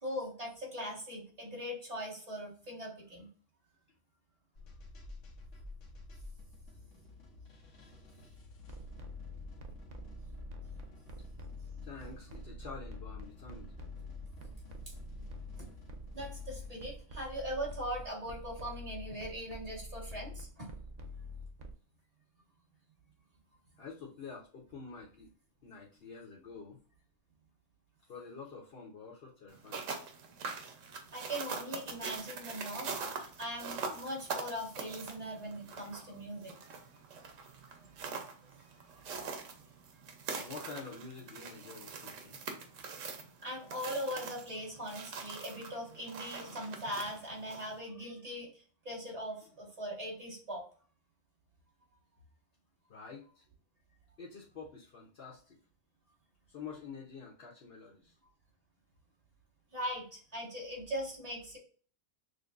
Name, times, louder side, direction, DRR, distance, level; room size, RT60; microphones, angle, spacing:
voice 1, 0.0-3.3 15.6-15.7 16.1-20.7 31.1-36.8 43.4-50.6 59.7-61.6, equal, 30° right, -3 dB, 1.6 m, -40 dB
sound 1, 4.5-16.8, left 2 dB, 80° left, 1.2 m, -52 dB
sound 2, 8.6-21.7, left 1 dB, 50° right, 0.5 m, -46 dB
voice 2, 11.8-13.7 23.8-25.3 25.6-26.8 28.1-29.8 40.4-42.4 52.9-53.4 54.2-55.6 56.5-58.1, left 5 dB, 55° left, -3 dB, 1.0 m, -48 dB
sound 3, 29.5-47.8, right 5 dB, 90° right, 1.1 m, -43 dB
6.5 x 2.2 x 2.4 m, 0.42 s
omnidirectional pair, 1.3 m